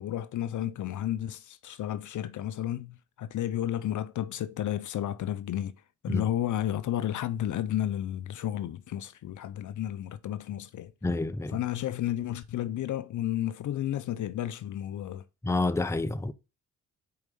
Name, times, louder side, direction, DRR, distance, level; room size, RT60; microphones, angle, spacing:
voice 1, 0.0-5.8 6.0-10.9 11.5-15.2, left 11 dB, 50° left, 0.6 m, -32 dB
voice 2, 11.0-11.6 15.4-16.3, left 2 dB, 5° left, 0.6 m, -28 dB
4.7 x 4.7 x 5.4 m
supercardioid pair, 55°, 38 cm